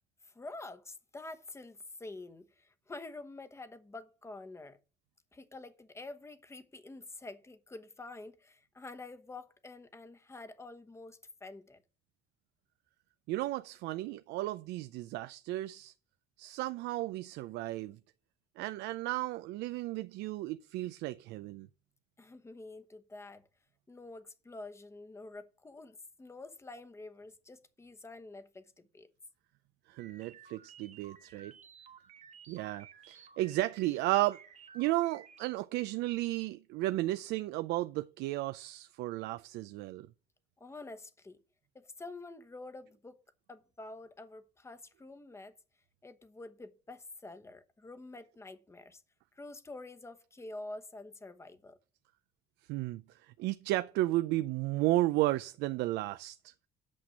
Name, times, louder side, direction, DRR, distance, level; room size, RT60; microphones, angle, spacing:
voice 1, 0.2-4.8 5.3-11.8 22.2-23.5 23.9-29.1 40.6-41.4 41.7-43.2 43.5-45.5 46.0-49.0 49.3-51.8, left 2 dB, 15° left, 1.0 m, -48 dB
voice 2, 13.3-15.9 16.4-18.0 18.6-21.7 29.9-31.5 32.5-34.4 34.7-40.1 52.7-56.5, right 17 dB, 85° right, 0.5 m, -33 dB
sound 1, 30.0-35.5, right 7 dB, 45° right, 1.2 m, -55 dB
8.5 x 6.0 x 6.3 m
cardioid pair, 110°, 17 cm